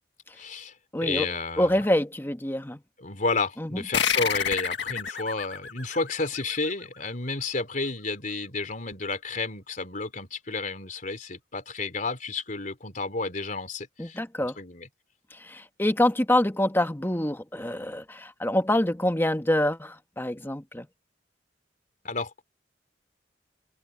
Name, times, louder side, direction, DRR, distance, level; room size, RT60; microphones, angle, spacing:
voice 1, 0.3-0.7 1.0-1.8 3.0-14.2 14.6-14.9 22.0-22.4, left 3 dB, 45° left, 3.7 m, -31 dB
voice 2, 0.9-1.3 1.6-2.8 3.6-3.8 14.0-14.6 15.4-20.9, left 1 dB, 10° left, 1.4 m, -26 dB
sound 1, 3.9-7.0, left 7 dB, 70° left, 1.8 m, -29 dB
head